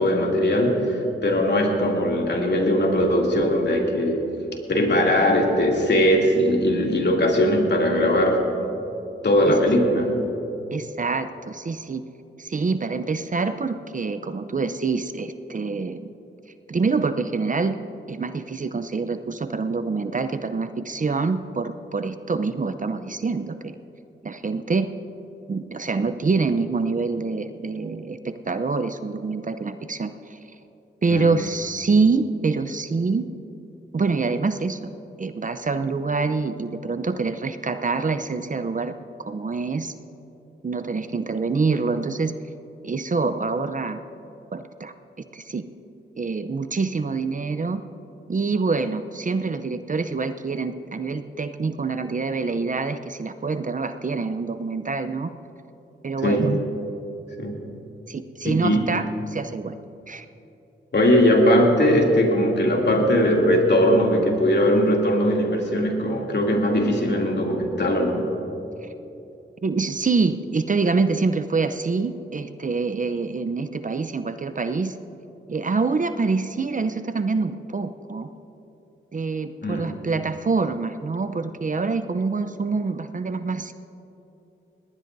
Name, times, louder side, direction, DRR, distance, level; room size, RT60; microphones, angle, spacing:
voice 1, 0.0-4.3 4.7-8.5 9.2-10.3 31.1-31.4 56.2-56.5 57.4-57.6 58.4-58.9 60.9-68.3 79.6-79.9, equal, 55° left, -1 dB, 2.8 m, -20 dB
voice 2, 10.7-12.0 12.4-16.1 16.7-17.8 18.1-23.8 24.2-24.9 25.5-30.4 31.0-33.2 33.9-34.8 35.2-39.9 40.6-42.3 42.8-44.0 44.5-44.9 45.3-45.6 46.2-47.8 48.3-55.3 56.0-56.6 58.1-59.7 60.1-60.2 68.8-68.9 69.6-74.9 75.5-78.3 79.1-83.7, right 4 dB, 40° right, 10 dB, 0.7 m, -26 dB
20.0 x 18.5 x 2.7 m, 2.9 s
cardioid pair, 50°, 21 cm